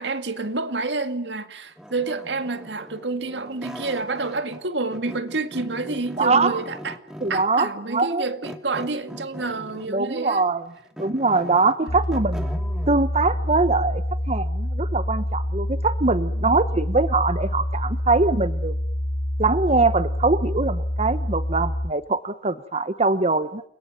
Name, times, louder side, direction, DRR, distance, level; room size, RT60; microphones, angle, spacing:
voice 1, 0.0-7.0 7.3-10.4 16.3-16.6, right 3 dB, 90° right, 2.0 m, -29 dB
sound 1, 1.8-4.6 4.9-7.6 8.4-10.0 10.5-13.0, equal, 5° right, 2.6 m, -40 dB
voice 2, 6.2-6.6 7.2-8.2 9.9-10.6 11.0-12.5 12.9-18.7 19.4-23.6, right 3 dB, 40° right, 1.2 m, -22 dB
sound 2, 11.9-21.9, equal, 65° left, 3.4 m, -27 dB
30.0 x 22.5 x 7.7 m
head